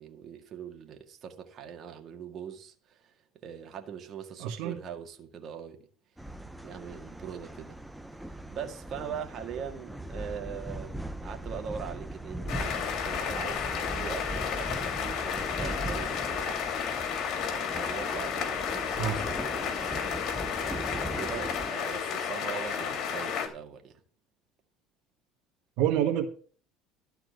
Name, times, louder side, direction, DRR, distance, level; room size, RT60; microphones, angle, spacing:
voice 1, 0.0-3.1 3.4-5.9 6.6-7.8 8.3-16.7 17.5-24.0, right 7 dB, 45° right, 1.9 m, -42 dB
voice 2, 4.4-4.8 19.0-19.2 25.8-26.3, right 11 dB, 70° right, 1.6 m, -27 dB
sound 1, 6.2-21.7, right 1 dB, 5° right, 0.8 m, -39 dB
sound 2, 12.5-23.5, left 7 dB, 55° left, 2.9 m, -32 dB
12.5 x 4.5 x 8.0 m
supercardioid pair, 110°, 0 cm